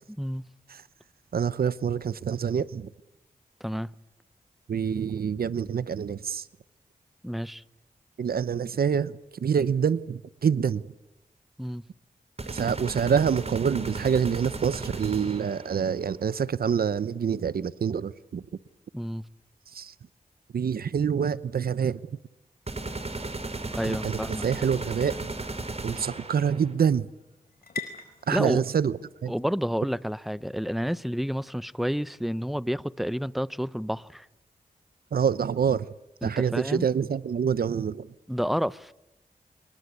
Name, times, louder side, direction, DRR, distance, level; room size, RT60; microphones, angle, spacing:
voice 1, 1.3-2.9 4.7-6.4 8.2-10.9 12.5-18.4 19.7-19.9 20.5-22.0 23.9-25.2 25.8-27.1 28.3-29.0 29.2-29.3 35.1-35.9 36.2-38.1, right 7 dB, 80° right, 0.8 m, -26 dB
voice 2, 7.2-7.6 11.6-11.8 18.9-19.2 23.7-24.5 28.3-28.6 29.3-34.3 36.2-36.9 38.3-38.9, equal, ahead, 0.8 m, -30 dB
sound 1, 12.4-15.7 22.7-26.7, right 2 dB, 40° right, 4.8 m, -35 dB
sound 2, 24.6-32.0, left 5 dB, 85° left, 4.8 m, -47 dB
26.5 x 22.0 x 8.3 m
cardioid pair, 50°, 16 cm